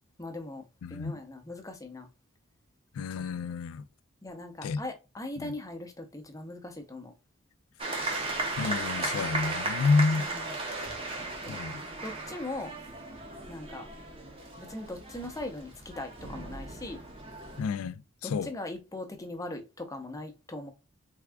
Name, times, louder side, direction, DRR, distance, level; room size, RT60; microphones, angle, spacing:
voice 1, 0.2-2.1 4.2-7.1 10.2-10.5 11.2-11.6 12.0-12.7 13.5-13.9 14.6-17.0 18.2-20.7, left 2 dB, 15° left, 0.5 m, -40 dB
voice 2, 0.8-1.2 2.9-3.8 4.6-4.8 5.4-5.5 8.6-10.3 11.5-11.8 17.6-18.5, left 4 dB, 85° left, 0.3 m, -29 dB
sound 1, 7.8-17.6, right 2 dB, 25° right, 0.6 m, -36 dB
3.5 x 2.3 x 3.3 m
head